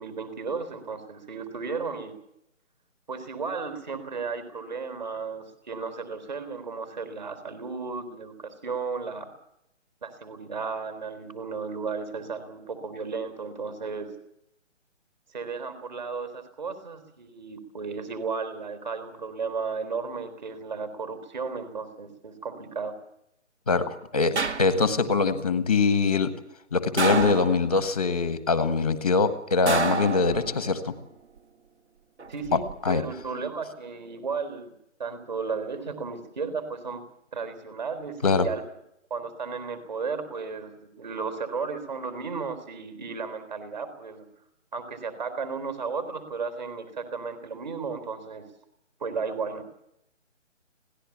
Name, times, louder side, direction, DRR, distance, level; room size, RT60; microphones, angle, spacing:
voice 1, 0.0-2.1 3.1-9.3 10.0-14.1 15.3-22.9 32.3-34.7 35.0-37.0 37.3-38.6 39.1-44.3 44.7-48.5 49.0-49.6, right 5 dB, 35° right, 11 dB, 4.0 m, -34 dB
voice 2, 23.7-26.3 26.7-30.9 32.8-33.0 38.2-38.5, left 4 dB, 10° left, 11 dB, 0.9 m, -23 dB
sound 1, 24.4-25.1 27.0-27.9 29.7-30.8 32.2-32.7, right 4 dB, 65° right, 2.4 m, -29 dB
26.0 x 18.0 x 7.3 m, 0.79 s
hypercardioid pair, 175°, 37 cm